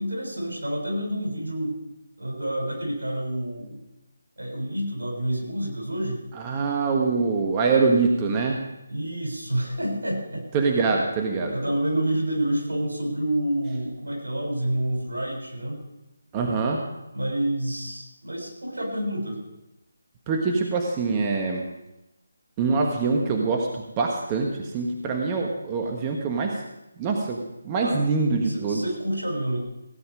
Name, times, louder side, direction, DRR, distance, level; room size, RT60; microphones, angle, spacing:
voice 1, 0.0-1.8 2.2-3.8 4.4-6.2 8.9-10.4 11.4-15.8 17.1-19.4 27.8-28.0 28.4-29.6, right 1 dB, 85° right, 0 dB, 6.7 m, -28 dB
voice 2, 6.3-8.7 10.5-11.5 16.3-16.8 20.3-21.6 22.6-26.6 27.0-28.8, right 4 dB, 20° right, 1 dB, 1.4 m, -24 dB
17.0 x 9.7 x 5.0 m, 0.91 s
figure-of-eight pair, 155°, 0 cm